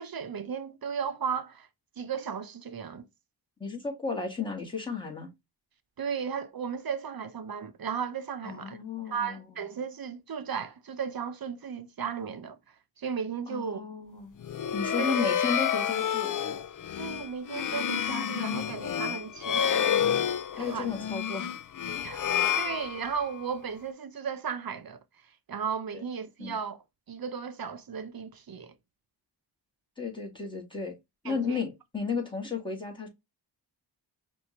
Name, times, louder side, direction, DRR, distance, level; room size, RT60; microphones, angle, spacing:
voice 1, 0.0-1.7 2.0-3.1 6.0-8.8 9.1-12.6 13.0-13.8 15.0-15.2 17.0-20.3 20.6-20.9 22.0-25.0 25.5-26.8 27.1-28.7 31.2-31.6, right 6 dB, 50° right, 0.9 m, -35 dB
voice 2, 3.6-5.3 8.4-9.4 13.5-14.4 14.7-16.4 20.6-21.6 25.9-26.0 26.4-26.5 30.0-30.9 31.2-33.1, left 5 dB, 10° left, 2.2 m, -33 dB
sound 1, 14.4-23.4, left 9 dB, 45° left, 0.5 m, -29 dB
5.6 x 2.7 x 3.0 m
cardioid pair, 75°, 44 cm